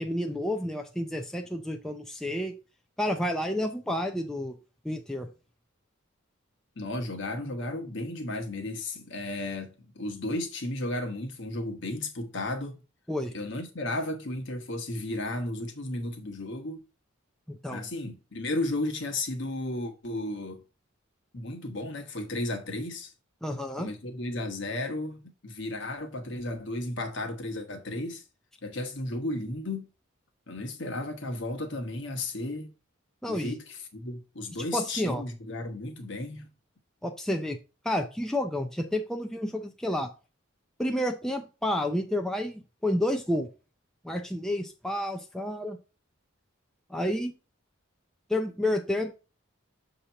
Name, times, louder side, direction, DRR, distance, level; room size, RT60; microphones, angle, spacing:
voice 1, 0.0-2.5 3.0-4.6 4.8-5.3 13.1-13.3 17.5-17.8 23.4-23.9 33.2-33.6 34.7-35.2 37.0-37.6 37.8-40.1 40.8-43.5 44.0-45.8 46.9-47.3 48.3-49.1, left 1 dB, ahead, 0.4 m, -30 dB
voice 2, 6.8-12.8 13.3-16.8 17.7-20.6 21.3-23.1 23.7-28.2 28.6-29.9 30.5-32.7 33.3-36.5, left 2 dB, 60° left, 1.1 m, -34 dB
6.6 x 2.9 x 5.6 m
head